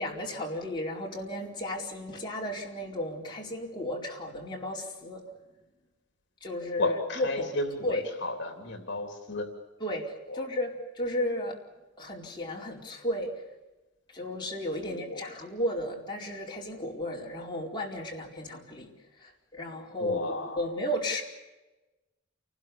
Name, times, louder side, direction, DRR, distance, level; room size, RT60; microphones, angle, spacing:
voice 1, 0.0-5.2 6.4-7.5 7.8-8.1 9.8-11.6 12.0-13.4 14.1-18.9 19.2-21.2, left 1 dB, 25° left, -2 dB, 4.4 m, -34 dB
voice 2, 6.8-9.5 10.3-10.4 14.8-15.3 20.0-20.7, left 2 dB, 60° left, 5 dB, 3.2 m, -33 dB
29.0 x 20.0 x 7.0 m, 1.1 s
head